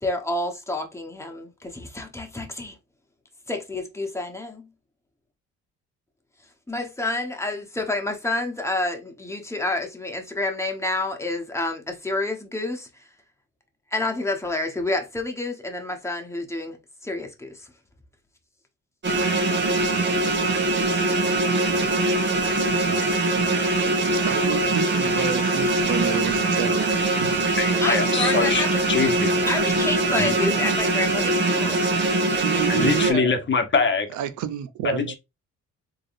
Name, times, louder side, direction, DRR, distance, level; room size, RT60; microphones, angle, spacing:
voice 1, 0.0-2.8 3.5-4.7 6.7-13.1 13.9-16.8 17.0-17.7 27.8-29.2 29.5-31.8, left 2 dB, 10° left, 1.1 m, -29 dB
sound 1, 19.0-33.1, right 2 dB, 35° right, 1.2 m, -22 dB
voice 2, 24.1-27.4 32.4-33.4 34.1-35.1, right 10 dB, 75° right, 0.6 m, -29 dB
voice 3, 27.6-29.3 30.1-30.3 32.1-32.2 32.7-34.1 34.8-35.1, left 5 dB, 40° left, 1.0 m, -24 dB
3.7 x 3.5 x 2.6 m
cardioid pair, 90°, 30 cm